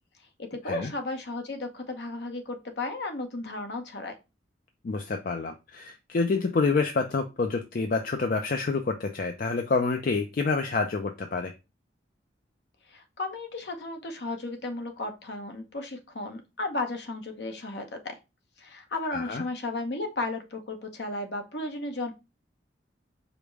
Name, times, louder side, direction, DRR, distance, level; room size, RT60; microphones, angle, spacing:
voice 1, 0.4-4.1 12.9-18.2 18.6-22.1, left 2 dB, 65° left, 4 dB, 0.9 m, -34 dB
voice 2, 4.8-11.5 19.1-19.4, left 4 dB, 50° left, 6 dB, 0.4 m, -28 dB
5.0 x 2.1 x 4.6 m, 0.27 s
head